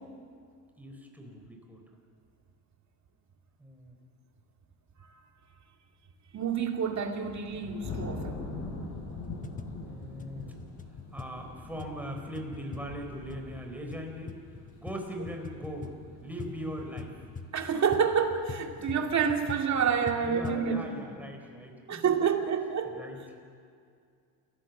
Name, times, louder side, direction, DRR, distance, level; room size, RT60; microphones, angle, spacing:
voice 1, 0.8-1.8 3.6-4.0 9.8-10.5 11.1-14.4 14.7-16.0 16.2-17.1 18.8-18.9 20.2-22.0 22.8-23.2, equal, 5° right, 4.2 m, -40 dB
voice 2, 6.3-8.4 17.5-20.9 21.9-23.0, right 6 dB, 35° right, 2.4 m, -28 dB
sound 1, 6.7-20.9, left 3 dB, 40° left, 7.8 m, -44 dB
sound 2, 9.0-20.7, left 4 dB, 15° left, 1.0 m, -44 dB
28.0 x 15.5 x 7.2 m
cardioid pair, 120°, 48 cm